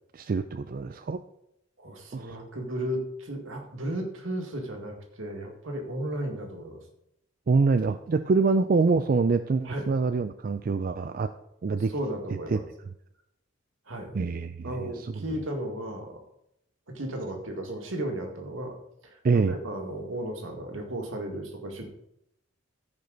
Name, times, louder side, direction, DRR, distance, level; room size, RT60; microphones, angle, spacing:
voice 1, 0.1-1.2 2.1-2.4 7.5-11.3 11.6-11.9 12.5-12.6 14.1-14.8 15.0-15.1 19.2-19.6, right 4 dB, 45° right, 10 dB, 0.3 m, -25 dB
voice 2, 1.8-6.8 9.6-9.9 11.9-12.6 13.9-14.1 14.6-16.2 16.9-18.7 19.0-21.9, right 1 dB, 75° right, 2 dB, 2.0 m, -34 dB
14.5 x 5.2 x 4.0 m, 0.80 s
head